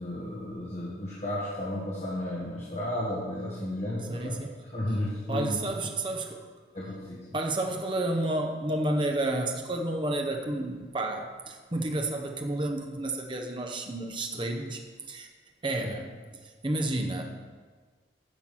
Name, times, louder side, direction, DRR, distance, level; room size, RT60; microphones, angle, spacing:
voice 1, 0.0-4.4 4.6-5.9 6.7-7.4 15.8-15.9, left 1 dB, 35° left, -6 dB, 1.6 m, -33 dB
voice 2, 4.1-4.5 5.3-6.4 7.3-15.3 15.6-16.1 16.6-17.2, right 1 dB, 25° right, 3 dB, 0.8 m, -30 dB
10.5 x 6.0 x 7.5 m, 1.5 s
head